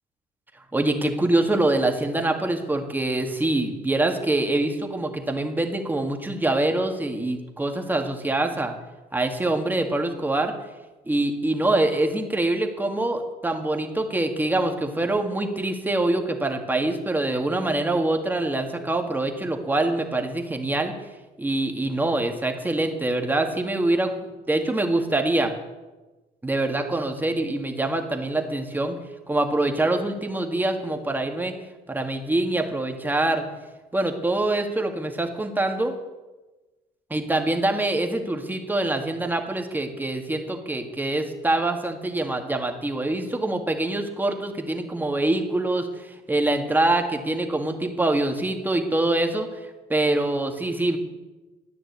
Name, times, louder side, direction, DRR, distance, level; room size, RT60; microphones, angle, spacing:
voice 1, 0.7-8.7 9.1-10.5 11.1-20.9 21.4-25.5 26.4-29.0 29.3-31.5 31.9-33.4 33.9-35.9 37.1-49.5 49.9-51.0, right 2 dB, 10° right, 4 dB, 2.0 m, -24 dB
14.0 x 9.7 x 8.3 m, 1.2 s
cardioid pair, 110°, 17 cm